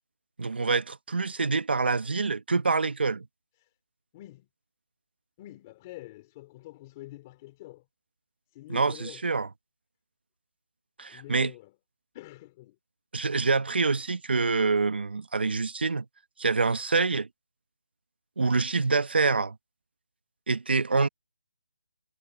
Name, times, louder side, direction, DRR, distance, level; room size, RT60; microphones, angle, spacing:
voice 1, 0.4-3.3 8.7-9.5 11.0-11.5 13.1-16.0 16.4-17.3 18.4-19.5 20.5-21.1, right 4 dB, 60° right, 1.1 m, -26 dB
voice 2, 4.1-4.5 5.4-7.9 8.5-9.2 11.1-11.7 12.1-12.8, left 17 dB, 15° left, 2.5 m, -46 dB
hypercardioid pair, 175°, 6 cm